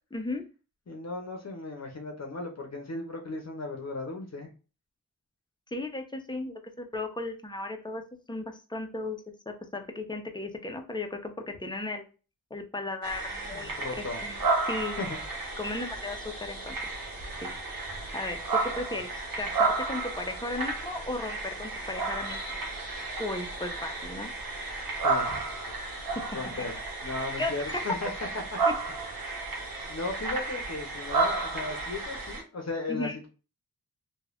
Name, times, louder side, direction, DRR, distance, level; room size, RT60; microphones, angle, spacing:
voice 1, 0.1-0.4 5.7-8.0 8.3-12.1 12.5-14.4 14.7-15.0 15.6-16.8 17.4-17.5 18.1-22.4 23.2-24.3 26.2-26.4 27.4-27.8 28.7-28.8 32.9-33.2, left 2 dB, 15° left, 4 dB, 0.7 m, -35 dB
voice 2, 0.9-4.5 13.4-14.2 15.0-15.2 25.0-25.4 26.3-26.7 27.0-28.1 28.9-29.0 29.9-33.3, left 2 dB, 45° left, 3 dB, 0.8 m, -36 dB
sound 1, 13.0-32.4, right 3 dB, 70° right, 0.9 m, -32 dB
3.1 x 2.3 x 2.4 m, 0.34 s
cardioid pair, 55°, 36 cm